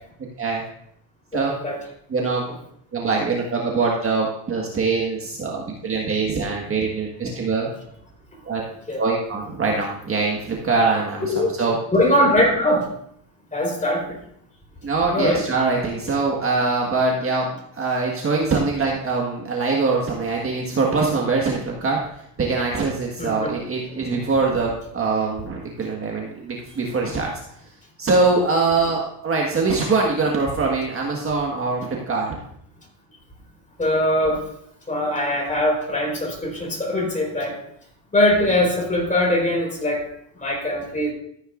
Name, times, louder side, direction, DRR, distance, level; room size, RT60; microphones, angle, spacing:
voice 1, 1.3-1.8 8.9-9.0 11.2-11.5 11.9-12.9 13.5-14.2 15.1-15.4 23.2-23.5 33.8-34.4 34.9-37.6 38.1-40.0 40.4-41.1, left 1 dB, 15° left, 0 dB, 4.2 m, -21 dB
voice 2, 2.1-2.4 2.9-7.7 8.5-8.6 9.0-11.8 14.8-17.5 17.7-27.3 28.0-32.4, right 4 dB, 25° right, -1 dB, 1.6 m, -23 dB
14.0 x 9.3 x 2.5 m, 0.72 s
supercardioid pair, 110°, 50 cm